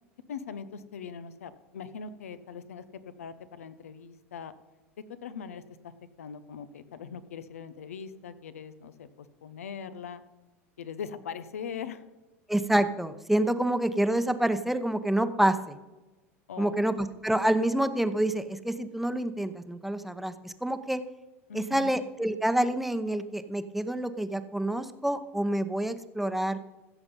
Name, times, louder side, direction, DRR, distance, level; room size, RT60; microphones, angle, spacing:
voice 1, 0.3-2.8 3.2-4.5 5.2-5.9 6.2-10.2 10.8-12.0 16.5-17.0 21.5-21.9, left 6 dB, 85° left, 13 dB, 0.8 m, -41 dB
voice 2, 12.5-15.8 16.6-21.0 21.5-26.6, right 1 dB, ahead, 10 dB, 0.9 m, -27 dB
15.5 x 7.1 x 5.3 m, 1.2 s
hypercardioid pair, 90°, 8 cm